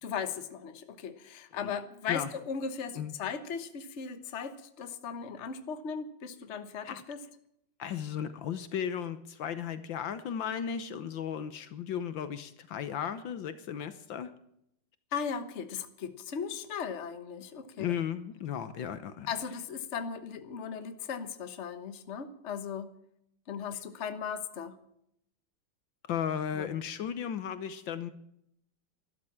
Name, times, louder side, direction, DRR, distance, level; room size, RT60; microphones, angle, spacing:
voice 1, 0.0-7.2 15.1-17.9 19.3-23.0 23.5-24.7 26.5-26.7, left 6 dB, 40° left, 9 dB, 1.2 m, -37 dB
voice 2, 7.8-14.3 17.8-19.3 26.1-28.1, left 8 dB, 70° left, 12 dB, 1.6 m, -35 dB
12.5 x 12.5 x 7.3 m, 0.75 s
omnidirectional pair, 2.2 m